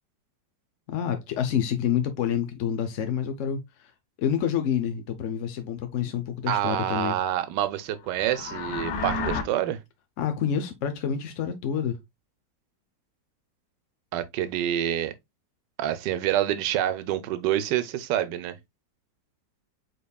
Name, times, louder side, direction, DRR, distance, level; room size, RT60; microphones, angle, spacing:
voice 1, 0.9-3.6 4.2-7.2 10.2-12.0, left 8 dB, 60° left, 0.8 m, -28 dB
voice 2, 6.5-9.8 14.1-15.1 15.8-18.6, right 11 dB, 80° right, 1.2 m, -27 dB
sound 1, 8.0-9.4, left 4 dB, 85° left, 1.6 m, -31 dB
5.2 x 4.1 x 2.2 m
omnidirectional pair, 1.9 m